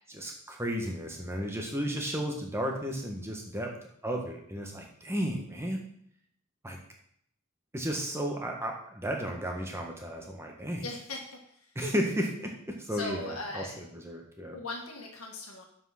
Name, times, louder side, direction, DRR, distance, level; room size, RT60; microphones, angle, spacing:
voice 1, 0.1-3.7 4.0-5.8 6.6-6.8 7.7-10.9 11.7-14.6, equal, 10° right, 1 dB, 1.4 m, -33 dB
voice 2, 10.8-11.2 12.9-13.8 14.5-15.7, left 2 dB, 75° left, 1 dB, 1.7 m, -38 dB
7.4 x 6.0 x 5.8 m, 0.68 s
head